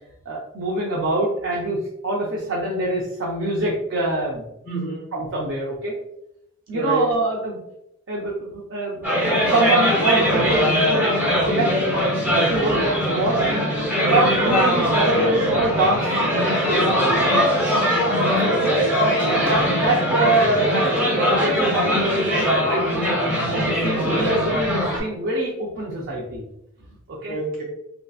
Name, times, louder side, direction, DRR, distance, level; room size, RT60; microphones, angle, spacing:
voice 1, 0.3-4.4 5.1-5.9 6.7-7.6 8.1-11.7 12.3-13.7 13.9-17.3 18.0-18.6 19.0-23.2 23.5-26.4 27.1-27.4, right 2 dB, 60° right, -4 dB, 0.5 m, -25 dB
voice 2, 4.6-5.1 6.7-7.1 18.4-18.8 24.0-24.4 27.3-27.6, right 2 dB, 45° right, -2 dB, 1.0 m, -28 dB
sound 1, 9.0-25.0, equal, 5° right, 0.7 m, -21 dB
3.2 x 2.8 x 2.3 m, 0.83 s
head